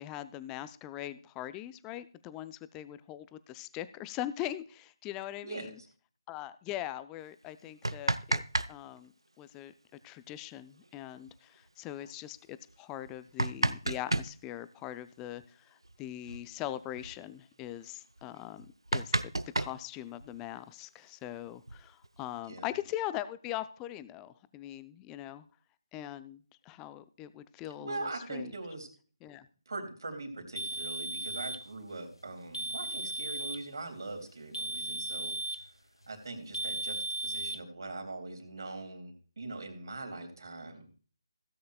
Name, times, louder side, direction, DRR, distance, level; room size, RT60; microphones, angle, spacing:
voice 1, 0.0-5.8 6.3-8.4 8.7-9.1 9.4-9.7 10.0-18.7 18.9-19.1 19.6-25.5 25.9-28.5 29.2-29.5, left 13 dB, 10° left, 15 dB, 0.3 m, -41 dB
voice 2, 5.4-5.9 22.5-22.7 27.8-28.9 29.7-35.6 36.1-41.0, right 2 dB, 55° right, 4 dB, 3.2 m, -42 dB
sound 1, 7.6-8.7 9.0-9.1 10.8-10.9 11.3-11.4 12.0-12.1 12.9-14.3 15.8-16.0 16.2-16.5 16.8-17.2 17.7-17.8 18.2-18.3 18.6-20.5 21.4-22.2, right 2 dB, 75° right, 0.6 m, -32 dB
sound 2, 30.6-31.7 32.5-33.7 34.5-35.7 36.5-37.6, right 1 dB, 90° left, 0.7 m, -36 dB
16.5 x 8.6 x 2.3 m, 0.40 s
figure-of-eight pair, 150°, 3 cm